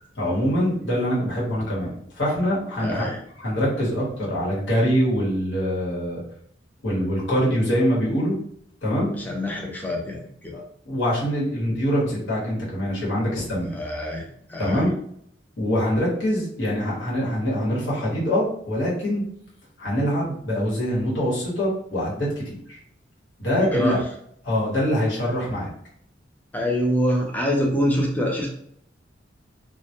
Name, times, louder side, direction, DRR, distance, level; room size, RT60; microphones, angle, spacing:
voice 1, 0.2-1.9 2.2-3.1 3.4-6.2 6.8-8.4 8.8-9.1 10.5-13.7 14.6-14.9 15.6-19.2 19.8-22.8 23.4-24.0 24.4-25.7, equal, 70° left, -6 dB, 1.0 m, -24 dB
voice 2, 2.8-3.2 9.2-10.5 13.7-14.9 23.6-24.0 26.5-28.5, equal, 10° left, 0 dB, 0.4 m, -25 dB
2.1 x 2.1 x 2.8 m, 0.68 s
head